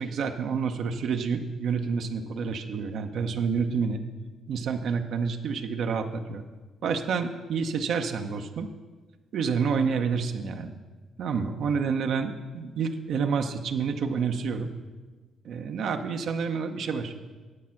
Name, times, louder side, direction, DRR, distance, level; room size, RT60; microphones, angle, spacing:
voice 1, 0.0-4.0 4.5-6.4 6.8-8.7 9.3-10.7 11.2-14.7 15.4-17.2, right 5 dB, 70° right, 5 dB, 0.7 m, -28 dB
9.8 x 7.4 x 5.8 m, 1.3 s
cardioid pair, 90°, 0 cm